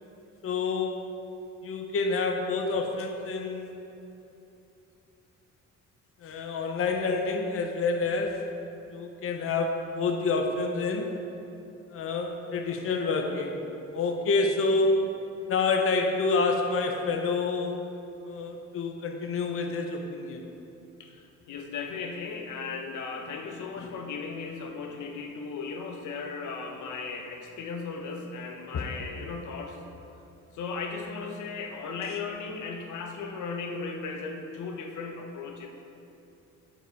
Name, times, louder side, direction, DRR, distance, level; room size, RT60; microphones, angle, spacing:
voice 1, 0.4-1.0 1.6-3.8 6.2-11.1 11.9-13.6 13.9-15.0 15.5-17.8 18.2-20.4 23.8-23.9 28.7-28.9, left 3 dB, 50° left, 3 dB, 0.8 m, -28 dB
voice 2, 21.0-29.8 30.5-35.7, left 4 dB, 80° left, 3 dB, 0.9 m, -36 dB
9.0 x 5.1 x 4.6 m, 3.0 s
cardioid pair, 90°, 30 cm